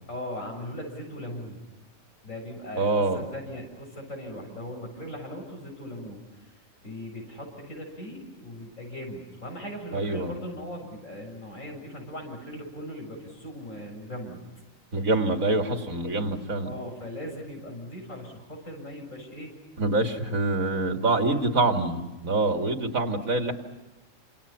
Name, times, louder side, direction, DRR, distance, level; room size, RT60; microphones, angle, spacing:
voice 1, 0.1-1.6 2.2-6.2 6.8-14.4 16.6-19.5 21.3-21.4, left 1 dB, 70° left, 1 dB, 7.9 m, -39 dB
voice 2, 2.7-3.2 9.9-10.3 14.9-16.7 19.8-23.5, right 2 dB, 90° right, 5 dB, 2.8 m, -25 dB
29.0 x 28.0 x 5.9 m, 1.1 s
omnidirectional pair, 1.4 m